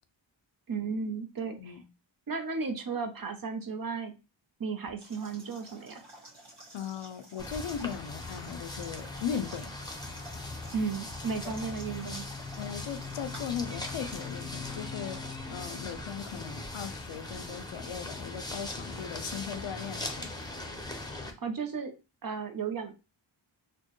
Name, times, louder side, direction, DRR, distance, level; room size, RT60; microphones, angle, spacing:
voice 1, 0.7-1.7 2.3-4.1 4.6-6.0 10.7-12.3 21.4-21.9 22.2-22.9, right 5 dB, 50° right, 0.7 m, -34 dB
sound 1, 5.0-14.5, right 1 dB, 70° right, 1.6 m, -51 dB
voice 2, 6.7-9.7 11.4-11.6 12.6-15.2 15.5-20.3, left 8 dB, 80° left, 0.5 m, -38 dB
sound 2, 7.4-21.3, left 2 dB, 10° left, 0.7 m, -40 dB
4.3 x 2.1 x 3.0 m
wide cardioid pair, 85°, 46 cm